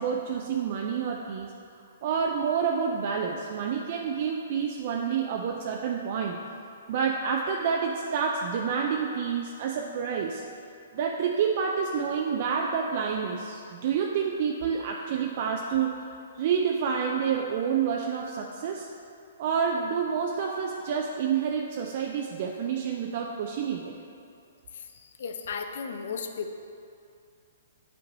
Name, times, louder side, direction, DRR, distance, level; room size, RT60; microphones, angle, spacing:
voice 1, 0.0-6.4 6.9-10.4 10.9-16.1 16.4-18.9 19.4-23.9, right 6 dB, 50° right, 1 dB, 0.4 m, -28 dB
voice 2, 25.2-26.5, left 5 dB, 65° left, 6 dB, 0.5 m, -34 dB
8.7 x 4.4 x 2.6 m, 2.5 s
hypercardioid pair, 135°, 0 cm